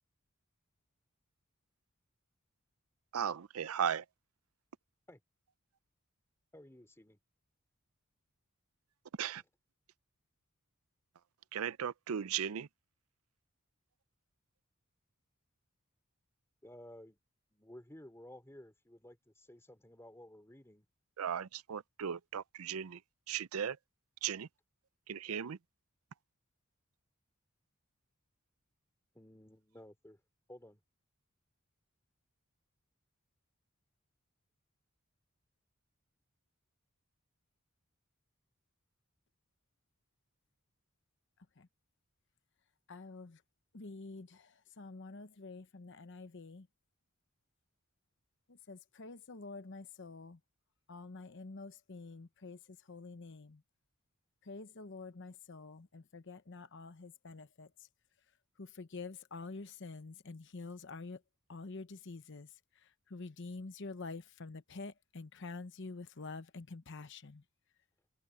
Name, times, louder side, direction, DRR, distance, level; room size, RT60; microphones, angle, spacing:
voice 1, 3.1-4.0 9.2-9.4 11.5-12.7 21.2-23.0 23.3-23.8 24.2-24.5 25.1-25.6, right 8 dB, 80° right, 0.5 m, -36 dB
voice 2, 6.5-7.2 16.6-17.2 17.5-20.9 29.1-30.2 30.5-30.8, left 1 dB, 10° left, 2.9 m, -54 dB
voice 3, 42.9-43.4 43.7-46.7 48.5-50.4 50.9-53.6 54.4-57.9 58.6-61.2 61.5-67.4, left 3 dB, 55° left, 0.9 m, -48 dB
head